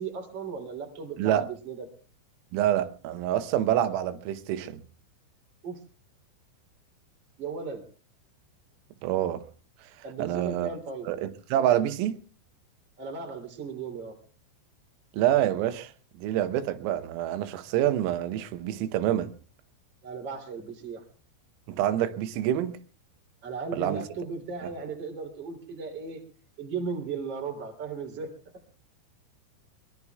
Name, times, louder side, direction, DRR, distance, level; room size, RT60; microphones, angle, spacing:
voice 1, 0.0-1.9 5.6-5.8 7.4-7.8 10.0-11.1 13.0-14.2 20.0-21.0 23.4-26.2 26.6-28.3, right 5 dB, 30° right, 2.8 m, -36 dB
voice 2, 1.2-1.5 2.5-4.8 9.0-9.4 10.2-10.7 11.1-12.2 15.1-15.9 16.2-19.3 21.7-22.8 23.7-24.1 24.6-24.7, right 12 dB, 90° right, 3.7 m, -27 dB
23.5 x 22.5 x 2.3 m
omnidirectional pair, 5.8 m